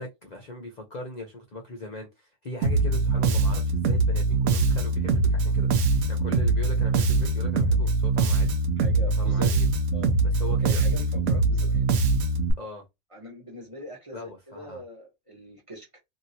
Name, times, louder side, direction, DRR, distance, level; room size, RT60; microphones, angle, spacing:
voice 1, 0.0-8.5 9.2-9.7 10.3-10.8 11.3-11.4 12.6-12.9 14.1-14.8, left 2 dB, 45° left, 0.5 m, -40 dB
Bass guitar, 2.6-12.5, right 3 dB, 70° right, 1.0 m, -23 dB
voice 2, 8.8-9.5 9.9-10.1 10.6-11.9 13.1-16.0, left 1 dB, 25° right, 0.9 m, -42 dB
2.8 x 2.8 x 2.7 m
omnidirectional pair, 1.6 m